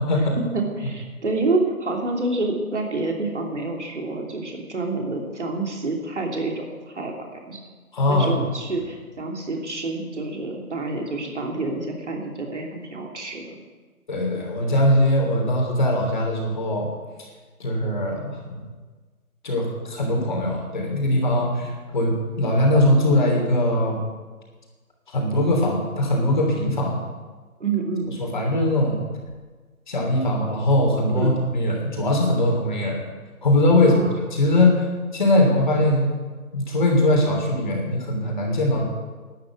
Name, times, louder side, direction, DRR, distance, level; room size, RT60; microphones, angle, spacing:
voice 1, 0.0-0.4 7.9-8.4 14.1-16.9 17.6-18.3 19.4-24.0 25.1-27.0 28.2-29.0 29.9-33.0 33.4-34.0 34.3-34.9 35.1-36.1 36.5-38.8, left 1 dB, 30° left, 0 dB, 3.1 m, -21 dB
voice 2, 0.5-6.7 6.9-7.1 7.5-7.6 8.1-13.6 27.6-28.1 31.1-31.4 33.8-34.2, right 3 dB, 50° right, 1 dB, 3.1 m, -27 dB
12.5 x 9.5 x 8.8 m, 1.4 s
figure-of-eight pair, 165°, 44 cm